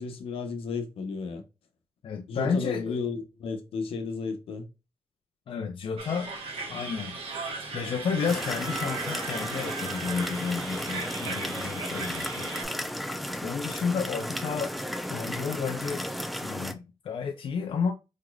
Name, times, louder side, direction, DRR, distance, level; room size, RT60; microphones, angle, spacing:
voice 1, 0.0-1.4 2.3-4.6 11.2-11.4, left 4 dB, 85° left, 0.9 m, -33 dB
voice 2, 2.0-3.0 5.5-6.3 6.7-7.2 7.7-12.6 13.4-14.8 15.1-16.1 16.4-17.9, left 6 dB, 65° left, 0.5 m, -31 dB
sound 1, 6.0-12.6, right 3 dB, 85° right, 1.4 m, -37 dB
sound 2, 8.3-16.7, equal, ahead, 0.7 m, -34 dB
5.0 x 3.0 x 2.4 m
cardioid pair, 65°, 9 cm